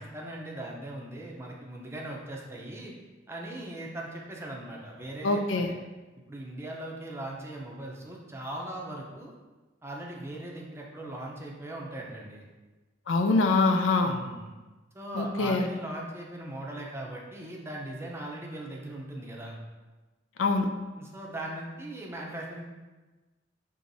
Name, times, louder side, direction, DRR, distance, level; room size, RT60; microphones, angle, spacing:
voice 1, 0.0-2.9 3.3-5.8 6.3-9.3 9.8-12.5 14.0-14.5 14.9-19.6 21.0-22.6, right 1 dB, 15° right, -1 dB, 0.6 m, -39 dB
voice 2, 5.2-5.7 13.1-14.2 15.1-15.7 20.4-20.7, left 3 dB, 75° left, 6 dB, 0.4 m, -24 dB
6.3 x 3.1 x 2.6 m, 1.2 s
head